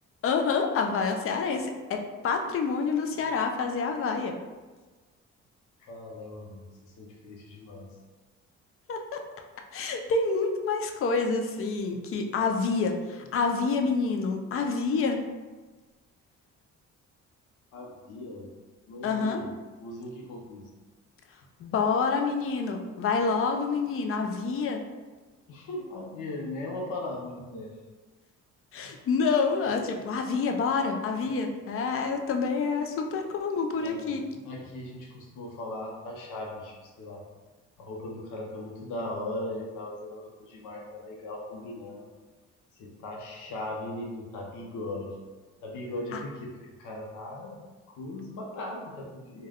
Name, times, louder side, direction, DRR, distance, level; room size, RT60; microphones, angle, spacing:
voice 1, 0.2-4.4 8.9-9.2 9.7-15.2 19.0-19.4 21.6-24.8 28.7-34.2 46.1-46.2, left 4 dB, 45° left, 4 dB, 0.4 m, -27 dB
voice 2, 5.8-7.9 11.9-12.0 17.7-18.5 18.9-20.7 25.5-27.7 28.8-29.0 33.8-37.2 37.8-42.1 42.7-45.2 45.6-47.6 47.9-49.5, left 1 dB, 80° left, -2 dB, 0.7 m, -39 dB
2.2 x 2.2 x 3.4 m, 1.3 s
cardioid pair, 90°, 30 cm